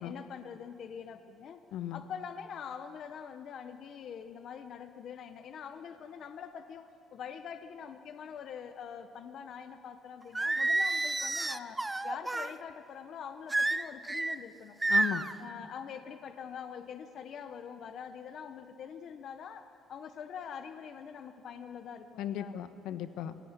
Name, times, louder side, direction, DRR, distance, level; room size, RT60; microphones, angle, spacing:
voice 1, 0.0-1.6 1.9-6.9 7.1-14.8 15.4-22.6, left 7 dB, 45° left, 9 dB, 0.8 m, -44 dB
voice 2, 1.7-2.0 14.9-15.3 22.2-23.4, left 10 dB, 75° left, 10 dB, 1.1 m, -36 dB
Singing, 10.3-12.5 13.5-14.3 14.8-15.3, right 2 dB, 10° right, 0.5 m, -29 dB
21.0 x 16.5 x 9.5 m, 2.6 s
cardioid pair, 165°, 0 cm